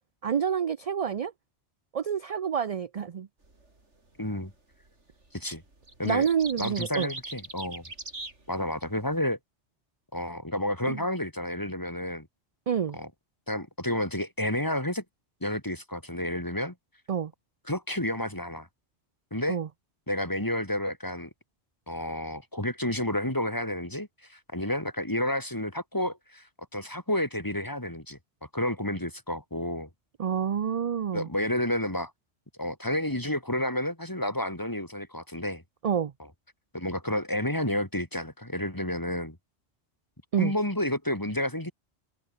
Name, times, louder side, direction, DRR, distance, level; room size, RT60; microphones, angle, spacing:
voice 1, 0.2-1.3 1.9-3.3 6.0-7.1 10.9-11.0 12.7-13.0 17.1-17.3 19.5-19.7 30.2-31.3 35.8-36.1 40.3-40.5, right 7 dB, 45° right, 0.5 m, -28 dB
sound 1, 3.4-3.7 4.8-5.2 5.5-9.1, right 2 dB, 85° right, 4.5 m, -40 dB
voice 2, 4.2-4.5 5.3-5.6 6.0-6.3 6.6-7.8 8.5-9.4 10.1-12.3 12.9-13.1 13.5-15.0 15.4-16.7 17.7-18.7 19.3-19.6 20.1-21.3 21.9-26.5 26.7-28.2 28.5-29.9 31.1-32.1 32.6-35.6 36.2-36.3 36.7-39.4 40.4-41.7, left 1 dB, 15° left, 3.3 m, -30 dB
omnidirectional pair, 1.2 m